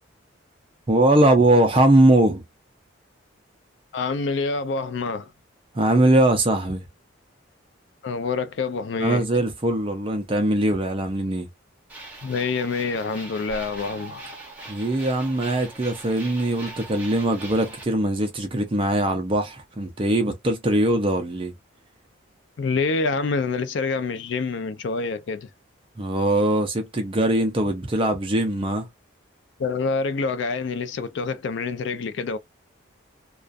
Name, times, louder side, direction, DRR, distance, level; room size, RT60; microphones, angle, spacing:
voice 1, 0.9-2.4 5.7-6.8 9.0-11.5 14.7-21.5 26.0-28.9, right 1 dB, 25° right, 0.4 m, -21 dB
voice 2, 3.9-5.3 8.0-9.2 12.2-14.2 22.6-25.5 29.6-32.4, left 4 dB, 60° left, 0.4 m, -26 dB
sound 1, 11.9-17.8, right 2 dB, 5° right, 0.8 m, -41 dB
2.3 x 2.3 x 2.5 m
head